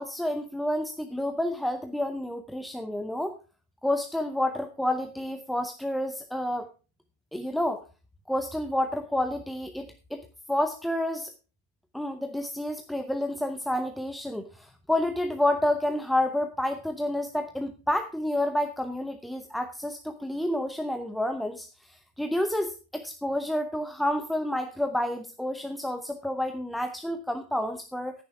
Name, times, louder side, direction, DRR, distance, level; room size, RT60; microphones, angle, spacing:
voice 1, 0.0-3.4 3.8-6.7 7.3-7.8 8.3-10.2 10.5-11.3 11.9-28.2, left 1 dB, ahead, 7 dB, 0.8 m, -29 dB
10.5 x 8.7 x 4.6 m, 0.34 s
figure-of-eight pair, 90°, 0 cm